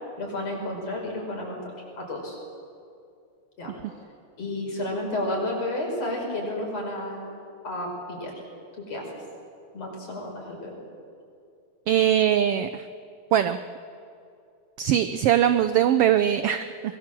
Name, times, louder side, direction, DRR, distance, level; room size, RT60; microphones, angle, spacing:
voice 1, 0.2-1.6 2.0-2.4 3.6-3.7 4.4-7.3 7.6-8.3 8.8-9.1 9.7-10.8, left 1 dB, 55° left, 0 dB, 6.3 m, -31 dB
voice 2, 11.9-12.9 13.3-13.6 14.8-17.0, right 10 dB, 80° right, 11 dB, 1.3 m, -21 dB
23.5 x 21.5 x 7.5 m, 2.4 s
omnidirectional pair, 3.4 m